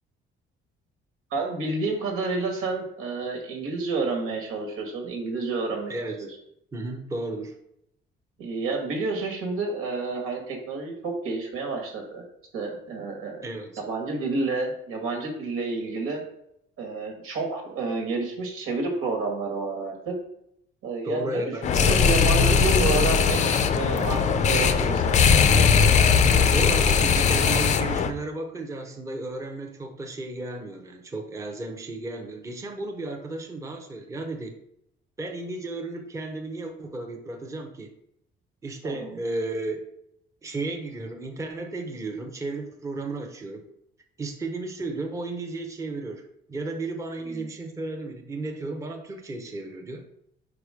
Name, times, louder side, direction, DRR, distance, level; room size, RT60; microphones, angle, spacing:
voice 1, 1.3-5.9 6.2-6.3 8.4-12.2 12.5-13.4 13.9-16.2 16.8-20.1 20.8-21.5 21.9-25.4 38.8-39.2 47.2-47.5, right 3 dB, 85° right, 2 dB, 1.8 m, -30 dB
voice 2, 5.9-6.3 6.7-7.6 13.4-13.8 21.0-21.9 26.5-34.6 35.2-37.9 38.6-39.8 40.4-43.7 44.2-46.2 46.5-50.1, right 2 dB, 15° right, 3 dB, 0.7 m, -34 dB
sound 1, 21.6-28.1, left 6 dB, 35° left, 0.5 m, -20 dB
5.1 x 4.8 x 5.0 m, 0.74 s
cardioid pair, 170°, 21 cm